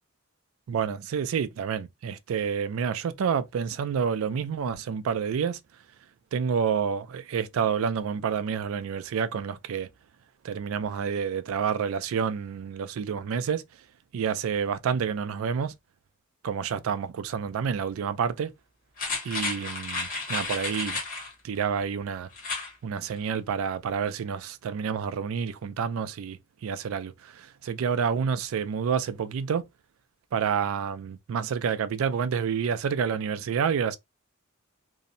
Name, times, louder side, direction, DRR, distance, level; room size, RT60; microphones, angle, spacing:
voice 1, 0.7-5.6 6.3-9.9 10.4-13.6 14.1-15.7 16.4-18.5 19.2-21.0 21.4-22.3 22.8-29.6 30.3-34.0, right 7 dB, 75° right, 0.3 m, -29 dB
sound 1, 19.0-21.3 22.3-22.7 23.1-23.2, left 3 dB, 40° left, 1.0 m, -32 dB
2.7 x 2.0 x 2.5 m
head